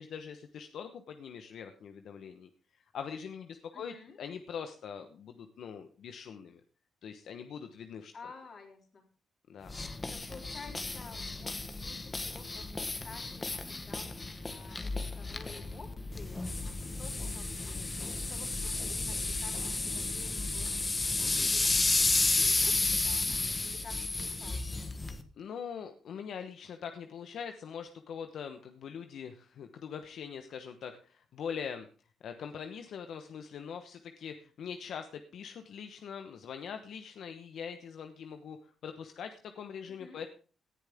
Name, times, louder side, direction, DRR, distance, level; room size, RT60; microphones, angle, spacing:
voice 1, 0.0-6.6 7.0-8.1 9.5-9.7 25.4-31.9 32.2-40.3, left 7 dB, 70° left, 7 dB, 1.1 m, -43 dB
voice 2, 3.7-4.2 8.1-9.0 9.7-14.1 14.4-16.5 16.8-23.3 23.6-24.9 39.9-40.2, left 4 dB, 45° left, 2 dB, 3.8 m, -52 dB
sound 1, 9.7-25.2, left 3 dB, 25° left, 1.4 m, -32 dB
18.0 x 10.5 x 3.6 m, 0.39 s
cardioid pair, 110°, 0 cm